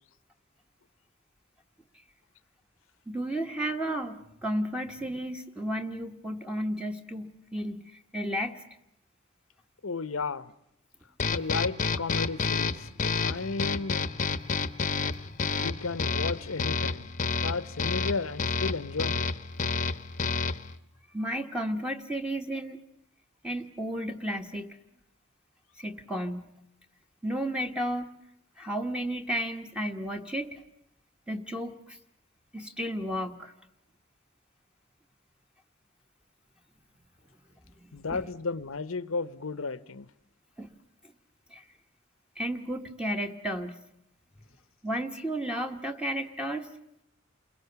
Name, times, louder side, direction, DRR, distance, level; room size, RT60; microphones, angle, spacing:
voice 1, 3.1-8.6 21.1-22.8 23.4-24.8 25.8-26.5 27.2-28.1 28.6-30.6 31.3-32.0 32.5-33.5 37.7-38.2 40.6-40.7 41.5-41.6 42.4-43.8 44.8-46.7, equal, 5° right, 1.3 m, -33 dB
voice 2, 9.8-10.5 11.3-14.0 15.4-17.1 17.4-19.3 37.9-40.1, left 4 dB, 80° left, 0.9 m, -33 dB
sound 1, 11.2-20.7, left 4 dB, 40° left, 0.9 m, -30 dB
29.0 x 22.5 x 6.9 m
head